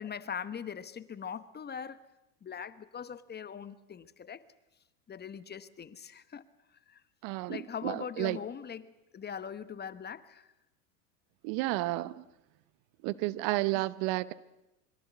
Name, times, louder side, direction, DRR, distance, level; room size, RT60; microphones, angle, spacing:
voice 1, 0.0-2.0 2.4-4.4 5.1-6.4 6.9-7.0 7.5-10.5, left 7 dB, 20° left, 1.2 m, -41 dB
voice 2, 7.2-8.4 11.4-12.2 13.0-14.3, right 19 dB, 50° right, 1.0 m, -32 dB
26.0 x 22.5 x 8.2 m
hypercardioid pair, 90°, 46 cm